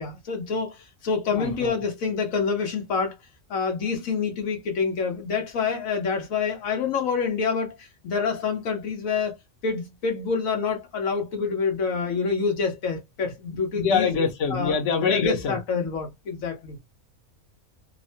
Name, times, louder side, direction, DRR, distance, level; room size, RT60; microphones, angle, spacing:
voice 1, 0.0-3.2 3.5-9.3 9.6-14.1 14.5-16.8, left 5 dB, 90° left, 1.3 m, -27 dB
voice 2, 1.3-1.7 13.8-15.6, left 5 dB, 70° left, 1.1 m, -24 dB
3.1 x 2.1 x 2.6 m
omnidirectional pair, 1.4 m